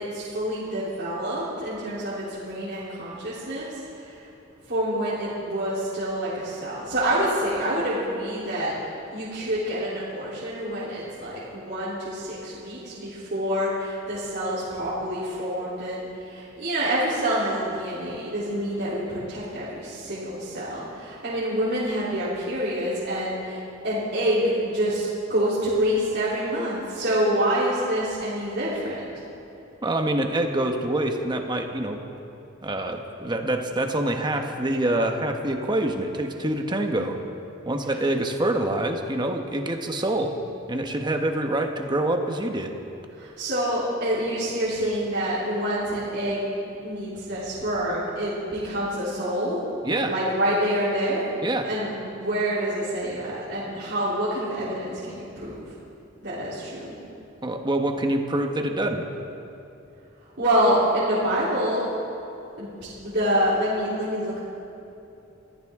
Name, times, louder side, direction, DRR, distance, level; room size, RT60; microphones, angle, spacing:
voice 1, 0.0-4.3 4.7-29.0 43.1-49.6 50.0-51.3 51.6-55.7 56.2-57.0 60.4-61.9 62.6-64.4, equal, 60° right, -10 dB, 3.4 m, -27 dB
voice 2, 29.8-32.0 32.6-37.2 37.7-40.3 40.7-42.7 49.8-50.1 51.4-51.7 57.4-59.0, right 1 dB, 20° right, 4 dB, 1.1 m, -26 dB
23.0 x 14.5 x 3.7 m, 2.8 s
head